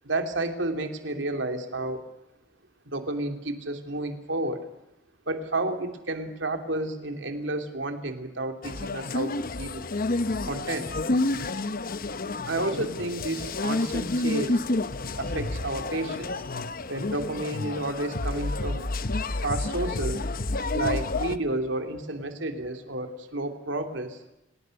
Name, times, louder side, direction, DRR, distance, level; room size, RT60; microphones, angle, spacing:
voice 1, 0.0-2.0 2.8-4.6 5.3-9.8 10.4-10.9 12.4-14.7 15.2-16.3 16.9-18.9 19.4-20.2 20.7-24.2, right 2 dB, 70° right, 5 dB, 3.1 m, -31 dB
sound 1, 8.6-21.4, left 2 dB, 50° left, 1.0 m, -29 dB
29.5 x 18.5 x 6.6 m, 0.91 s
head